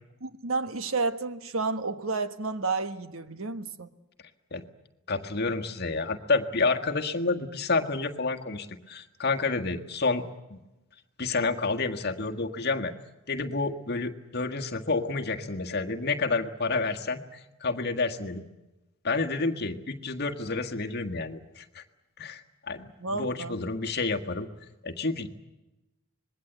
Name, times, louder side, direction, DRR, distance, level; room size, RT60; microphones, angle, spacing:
voice 1, 0.2-3.9 23.0-23.7, right 3 dB, 65° right, 1.3 m, -31 dB
voice 2, 5.1-10.2 10.5-10.6 11.2-12.9 13.3-18.4 19.0-21.8 22.2-24.5 24.8-25.3, left 3 dB, 50° left, 1.6 m, -29 dB
26.0 x 21.0 x 8.1 m
head